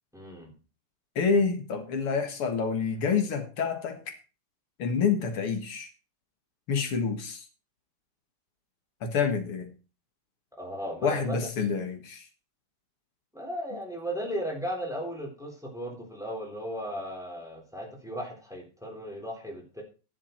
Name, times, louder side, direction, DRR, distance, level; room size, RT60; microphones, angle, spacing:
voice 1, 0.1-0.5 10.5-11.4 13.3-19.8, equal, ahead, 1 dB, 3.7 m, -36 dB
voice 2, 1.2-4.1 4.8-5.9 6.7-7.4 9.0-9.7 11.0-12.3, left 5 dB, 80° left, 6 dB, 2.7 m, -28 dB
12.0 x 10.5 x 4.5 m, 0.33 s
omnidirectional pair, 2.4 m